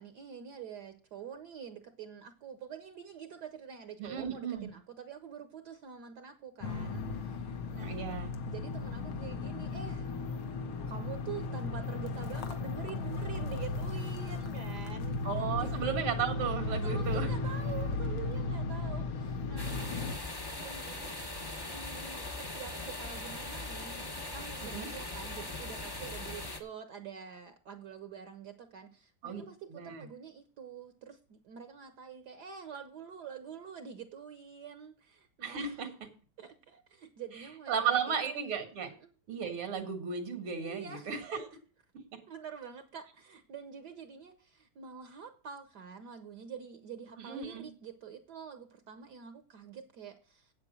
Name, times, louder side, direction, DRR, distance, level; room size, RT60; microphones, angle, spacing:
voice 1, 0.0-8.0 8.5-10.4 10.9-15.2 15.5-15.9 16.8-21.2 21.6-35.8 36.4-38.4 38.8-39.1 40.6-41.4 42.3-50.5, right 7 dB, 60° right, 9 dB, 1.2 m, -46 dB
voice 2, 4.0-4.7 7.8-8.3 15.2-17.3 24.6-24.9 29.2-29.4 29.7-30.1 35.4-35.9 37.7-38.9 39.3-41.5 47.2-47.7, right 7 dB, 85° right, 7 dB, 2.5 m, -34 dB
sound 1, 6.6-20.1, left 3 dB, 75° left, 1.9 m, -35 dB
sound 2, 19.6-26.6, left 2 dB, 30° left, 0.4 m, -40 dB
8.8 x 8.2 x 6.1 m, 0.40 s
omnidirectional pair, 2.3 m